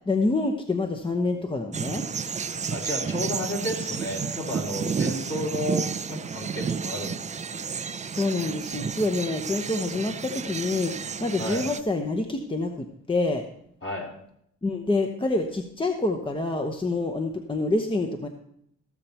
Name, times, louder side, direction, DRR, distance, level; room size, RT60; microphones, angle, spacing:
voice 1, 0.1-2.0 8.1-13.4 14.6-18.3, left 2 dB, 15° left, 4 dB, 0.9 m, -27 dB
sound 1, 1.7-11.8, right 6 dB, 25° right, 0.4 m, -31 dB
voice 2, 2.7-7.8 11.4-11.7 13.8-14.1, left 1 dB, 45° left, -2 dB, 3.6 m, -32 dB
15.0 x 6.7 x 4.3 m, 0.73 s
cardioid pair, 90°, 30 cm